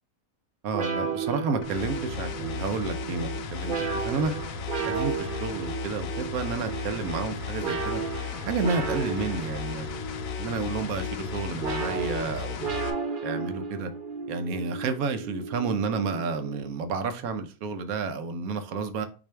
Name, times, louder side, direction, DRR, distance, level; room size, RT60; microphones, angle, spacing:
voice 1, 0.6-4.3 4.8-8.0 8.4-9.9 10.4-12.7 13.2-13.9 14.3-19.1, right 4 dB, 75° right, 1.1 m, -31 dB
sound 1, 0.7-16.9, right 5 dB, 50° right, 0.6 m, -34 dB
sound 2, 1.6-12.9, left 7 dB, 70° left, 1.0 m, -35 dB
Wind instrument woodwind instrument, 6.5-10.5, right 1 dB, 90° right, 1.5 m, -49 dB
6.0 x 2.7 x 3.3 m
omnidirectional pair, 1.6 m